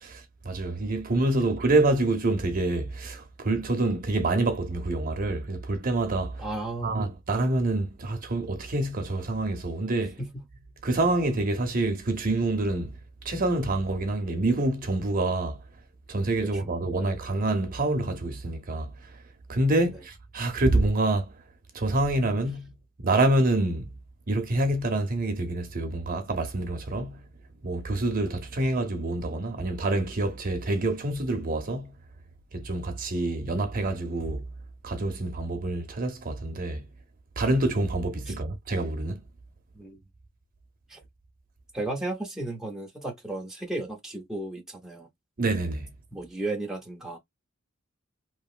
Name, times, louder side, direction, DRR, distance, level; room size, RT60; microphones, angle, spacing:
voice 1, 0.0-6.4 6.8-10.2 10.8-12.9 13.2-15.6 16.1-18.9 19.5-21.3 21.7-22.7 23.0-23.9 24.3-27.2 27.6-31.9 32.5-34.4 34.8-36.8 37.4-39.2 45.4-45.9, right 2 dB, 45° right, 0.6 m, -27 dB
voice 2, 6.4-7.0 10.2-10.4 16.4-17.1 19.7-19.9 38.3-38.4 39.7-40.0 40.9-41.0 41.7-45.1 46.1-47.2, right 2 dB, 5° right, 0.6 m, -34 dB
2.9 x 2.4 x 2.4 m
head